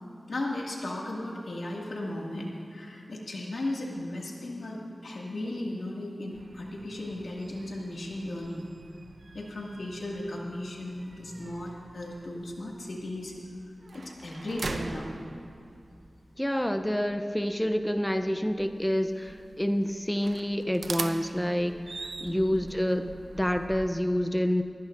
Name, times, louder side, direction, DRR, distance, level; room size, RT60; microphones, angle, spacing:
voice 1, 0.3-8.7 9.3-13.3 13.9-15.1 22.3-22.6, left 1 dB, 80° left, -2 dB, 2.1 m, -36 dB
sound 1, 6.3-23.9, right 3 dB, 75° right, 0.6 m, -44 dB
voice 2, 16.4-24.6, equal, 5° left, 8 dB, 0.6 m, -28 dB
21.5 x 16.0 x 2.6 m, 2.4 s
wide cardioid pair, 55°, 0 cm